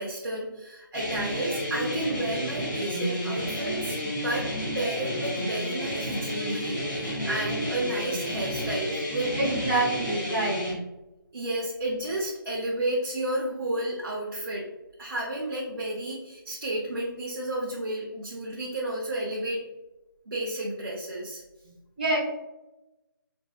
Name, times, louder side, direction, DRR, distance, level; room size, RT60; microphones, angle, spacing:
voice 1, 0.0-9.4 9.7-9.8 11.3-14.7 15.0-19.6 20.3-21.4, right 1 dB, 65° right, -5 dB, 0.8 m, -32 dB
sound 1, 0.9-10.7, equal, 5° left, 0.4 m, -31 dB
voice 2, 9.4-10.6 22.0-22.2, right 2 dB, 25° right, -6 dB, 1.1 m, -26 dB
3.5 x 2.6 x 2.4 m, 1.0 s
figure-of-eight pair, 175°, 12 cm